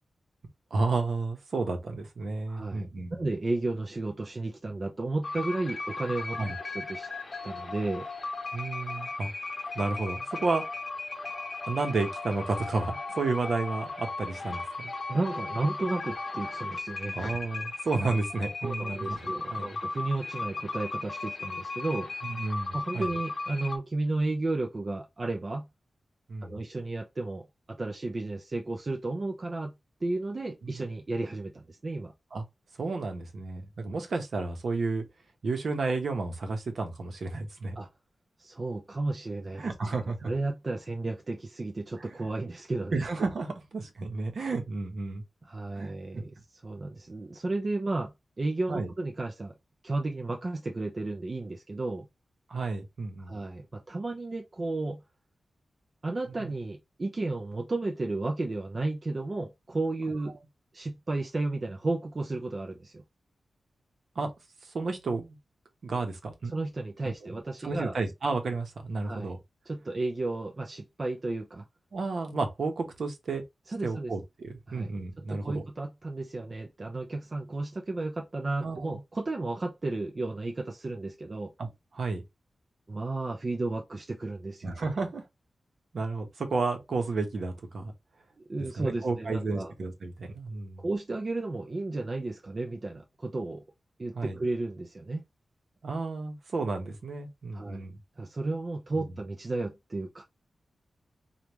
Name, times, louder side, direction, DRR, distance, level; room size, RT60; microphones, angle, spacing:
voice 1, 0.7-3.2 6.4-6.6 8.5-9.3 9.7-10.6 11.7-14.9 17.1-19.2 19.5-19.8 22.2-23.1 26.3-26.6 30.6-30.9 32.3-32.4 32.8-35.0 35.4-37.8 39.6-40.3 42.0-42.1 42.9-45.2 45.8-45.9 48.7-48.9 52.5-53.3 56.4-56.5 64.2-64.3 64.6-65.4 65.8-66.5 67.2-67.3 67.6-69.4 71.9-73.4 73.8-75.6 78.6-79.0 81.6-82.2 84.6-85.2 85.9-87.9 88.7-90.8 94.1-94.4 95.8-98.0, right 3 dB, 60° right, 1.0 m, -32 dB
voice 2, 2.5-7.1 7.4-8.1 15.1-17.3 18.6-22.1 22.7-25.7 26.4-29.7 30.0-32.1 37.8-37.9 38.4-39.7 40.2-43.0 45.5-46.4 46.6-49.5 49.8-52.1 53.3-55.0 56.0-60.4 60.7-63.0 66.5-67.9 69.0-69.3 69.7-71.6 73.7-74.1 74.7-74.9 75.2-81.5 82.9-84.7 88.5-89.7 90.8-93.6 94.0-95.2 97.5-97.8 98.2-100.2, right 2 dB, 30° right, 0.5 m, -33 dB
sound 1, 5.2-23.8, left 3 dB, 35° left, 0.9 m, -36 dB
5.1 x 2.4 x 3.0 m
wide cardioid pair, 165°, 0 cm